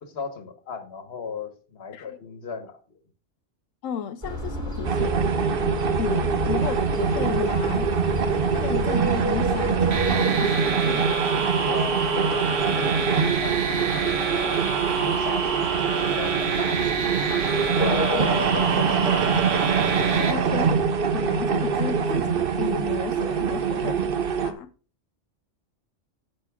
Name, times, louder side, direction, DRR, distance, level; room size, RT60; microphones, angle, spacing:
voice 1, 0.0-2.8 11.6-14.8 15.1-17.3 17.8-19.4 20.2-20.3, left 5 dB, 55° left, 1.5 m, -36 dB
voice 2, 3.8-5.3 6.0-7.9 8.5-11.1 17.8-18.3 20.3-20.7 21.0-24.7, left 8 dB, 85° left, 1.0 m, -33 dB
sound 1, 4.2-10.2, equal, 20° right, 4.6 m, -31 dB
sound 2, 4.8-24.5, right 6 dB, 50° right, 0.9 m, -24 dB
sound 3, 9.9-20.3, right 5 dB, 70° right, 1.6 m, -28 dB
10.5 x 7.5 x 3.5 m
omnidirectional pair, 1.3 m